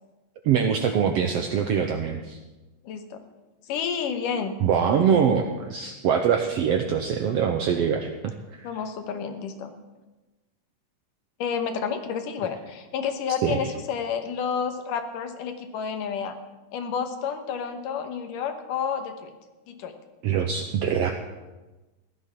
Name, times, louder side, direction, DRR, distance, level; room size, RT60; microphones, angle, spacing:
voice 1, 0.4-2.4 4.6-8.7 13.4-13.7 20.2-21.1, right 7 dB, 75° right, 5 dB, 1.4 m, -23 dB
voice 2, 2.8-3.2 3.7-4.6 5.0-5.1 8.6-9.7 11.4-16.3 16.7-19.3 19.7-19.9, left 6 dB, 80° left, 7 dB, 2.7 m, -30 dB
15.5 x 11.0 x 5.9 m, 1.1 s
omnidirectional pair, 3.8 m